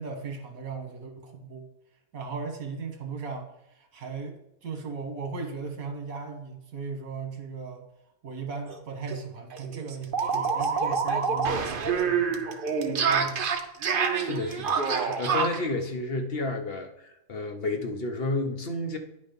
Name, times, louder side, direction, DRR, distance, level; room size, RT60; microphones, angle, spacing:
voice 1, 0.0-1.7 2.1-7.9 8.2-12.6 12.8-13.5, right 5 dB, 70° right, 3 dB, 1.7 m, -37 dB
sound 1, 8.7-8.8 9.1-9.2 9.5-15.7, right 5 dB, 50° right, 0.7 m, -27 dB
voice 2, 14.1-19.0, left 2 dB, 50° left, 4 dB, 1.0 m, -31 dB
10.0 x 4.1 x 5.2 m, 0.84 s
omnidirectional pair, 1.5 m